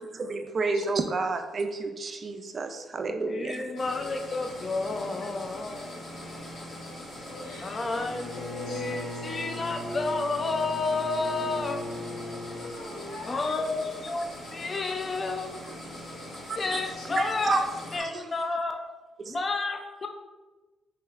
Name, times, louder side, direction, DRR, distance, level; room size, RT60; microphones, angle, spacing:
voice 1, 0.0-3.7 16.5-16.8 17.2-17.6 18.0-18.3 19.2-19.4, right 3 dB, 45° right, 0.3 m, -30 dB
voice 2, 3.3-5.9 7.6-11.8 13.2-15.5 16.6-17.7 17.9-18.8 19.3-20.1, left 3 dB, 35° left, 0.4 m, -30 dB
sound 1, 3.8-18.0, left 1 dB, 50° left, 1.2 m, -42 dB
voice 3, 7.1-7.8 8.7-8.8 9.3-9.4 12.5-13.5 17.0-17.1, left 2 dB, 85° left, 0.9 m, -44 dB
Bowed string instrument, 8.0-12.8, left 1 dB, 5° left, 1.2 m, -38 dB
4.8 x 2.9 x 2.4 m
cardioid pair, 90°, 0 cm